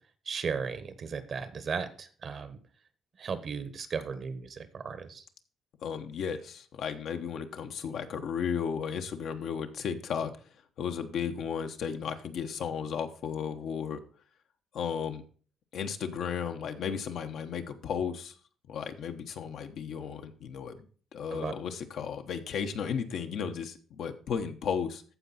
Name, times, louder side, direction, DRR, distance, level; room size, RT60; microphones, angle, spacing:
voice 1, 0.3-2.6 3.2-5.2 21.3-21.5, right 5 dB, 55° right, 12 dB, 1.2 m, -36 dB
voice 2, 5.8-10.3 10.8-14.0 14.7-15.2 15.7-18.3 18.7-20.9 21.1-25.0, left 7 dB, 75° left, 6 dB, 1.1 m, -34 dB
14.0 x 4.7 x 4.2 m, 0.41 s
cardioid pair, 90°, 0 cm